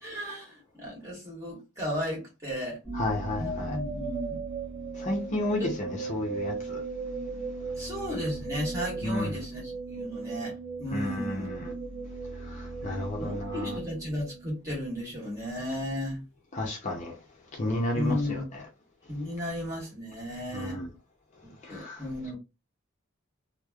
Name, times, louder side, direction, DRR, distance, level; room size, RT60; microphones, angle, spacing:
voice 1, 0.0-2.8 3.4-4.4 7.8-11.7 12.9-16.2 17.9-18.5 19.1-20.8 21.4-22.3, equal, 15° right, 1.3 m, -35 dB
sound 1, 2.8-14.9, right 3 dB, 10° left, 0.9 m, -37 dB
voice 2, 2.9-3.8 5.0-6.8 9.0-9.4 10.9-11.7 12.5-13.8 16.5-17.1 17.6-18.6 20.5-20.9 21.6-22.0, left 1 dB, 35° left, 0.6 m, -32 dB
3.1 x 2.0 x 2.3 m
head